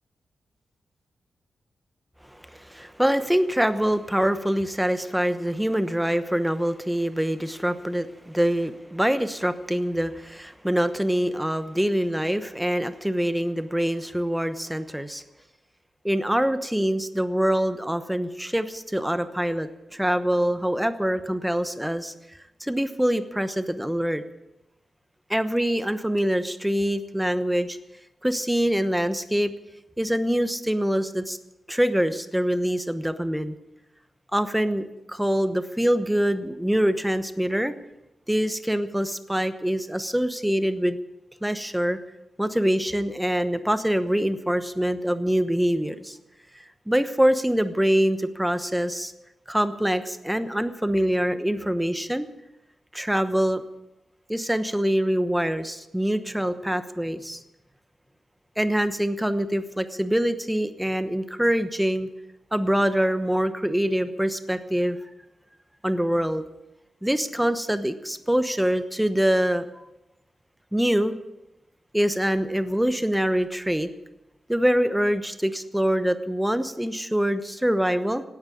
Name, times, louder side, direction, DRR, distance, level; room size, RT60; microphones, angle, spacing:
voice 1, 2.5-15.2 16.0-22.1 22.6-24.2 25.3-27.8 28.2-29.5 30.0-31.4 31.7-33.5 34.3-37.7 38.3-41.0 41.4-42.0 42.4-46.2 46.9-49.1 49.5-52.3 52.9-53.6 54.3-57.4 58.6-62.1 62.5-65.0 65.8-66.5 67.0-69.8 70.7-71.1 71.9-73.9 74.5-78.2, equal, 5° right, 11 dB, 1.0 m, -24 dB
17.0 x 9.5 x 8.5 m, 0.91 s
wide cardioid pair, 110°, 0 cm